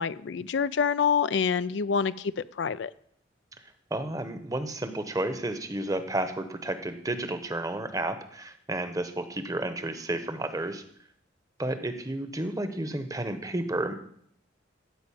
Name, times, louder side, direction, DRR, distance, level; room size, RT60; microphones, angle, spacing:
voice 1, 0.0-2.9, left 6 dB, 65° left, 15 dB, 0.4 m, -27 dB
voice 2, 3.9-10.8 11.6-14.0, right 1 dB, 20° right, 9 dB, 1.0 m, -32 dB
14.0 x 5.1 x 8.6 m, 0.68 s
head